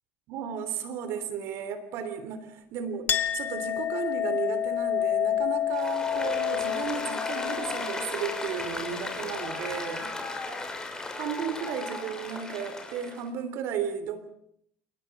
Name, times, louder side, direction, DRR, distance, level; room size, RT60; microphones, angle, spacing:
voice 1, 0.3-10.1 11.2-14.2, right 7 dB, 65° right, 11 dB, 3.4 m, -34 dB
Chink clink, 3.1-10.1, left 10 dB, 45° left, 1.8 m, -30 dB
Applause, 5.7-13.2, left 2 dB, 15° left, 6.4 m, -36 dB
29.5 x 18.0 x 6.1 m, 0.69 s
supercardioid pair, 110°, 5 cm